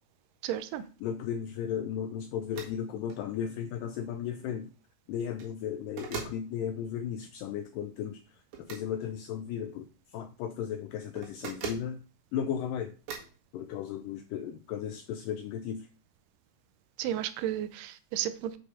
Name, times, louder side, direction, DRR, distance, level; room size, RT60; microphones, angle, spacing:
voice 1, 0.4-0.9 17.0-18.6, right 11 dB, 85° right, 2.0 m, -33 dB
voice 2, 1.0-4.7 5.1-8.2 8.6-9.9 10.1-12.0 12.3-12.9 13.5-15.9, left 8 dB, 90° left, 1.9 m, -35 dB
sound 1, 2.5-2.8 3.1-3.2 5.2-5.5 6.0-6.4 8.5-8.9 11.2-11.9 13.1-13.4, right 7 dB, 70° right, 3.5 m, -40 dB
7.5 x 5.1 x 4.8 m
omnidirectional pair, 4.5 m